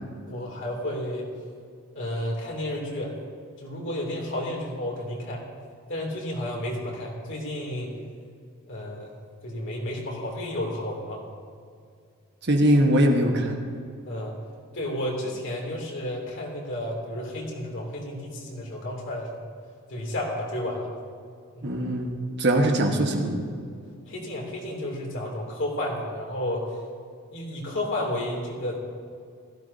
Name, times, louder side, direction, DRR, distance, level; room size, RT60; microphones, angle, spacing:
voice 1, 0.3-1.3 1.9-3.1 3.6-5.4 5.9-7.9 8.7-9.2 9.4-11.2 14.1-14.3 14.7-19.4 19.9-20.9 21.5-21.6 24.1-26.6 27.3-28.8, left 1 dB, 55° left, -2 dB, 2.8 m, -32 dB
voice 2, 12.4-13.6 21.6-22.1 22.4-23.4, right 1 dB, 50° right, 2 dB, 1.3 m, -21 dB
17.0 x 14.5 x 2.8 m, 2.2 s
head